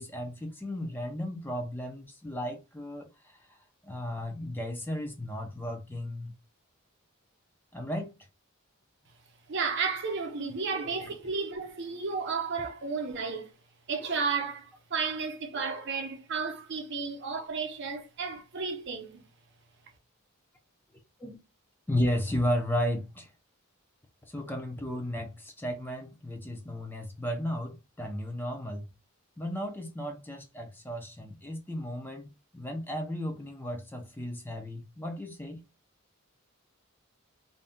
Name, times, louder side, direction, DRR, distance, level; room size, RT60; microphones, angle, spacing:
voice 1, 0.0-3.4 3.8-6.3 7.7-8.1 11.0-11.1 21.2-21.4 21.9-23.3 24.3-28.9 29.4-35.6, equal, 10° left, 0.5 m, -34 dB
voice 2, 9.5-13.5 13.9-19.2, right 5 dB, 55° right, 0.7 m, -33 dB
2.6 x 2.3 x 3.4 m
head